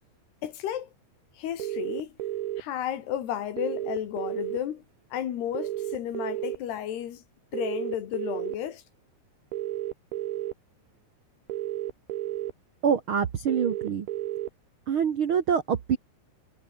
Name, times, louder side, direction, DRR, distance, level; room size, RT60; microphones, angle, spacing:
voice 1, 0.4-0.9 1.4-2.2 2.6-4.8 5.1-7.2 7.5-8.8, left 10 dB, 80° left, 4.1 m, -33 dB
sound 1, 1.6-2.6 3.6-4.6 5.6-6.6 7.5-8.6 9.5-10.5 11.5-12.5 13.5-14.5, right 14 dB, 75° right, 3.1 m, -32 dB
voice 2, 12.8-14.1 14.9-16.0, right 7 dB, 90° right, 1.1 m, -25 dB
omnidirectional pair, 4.7 m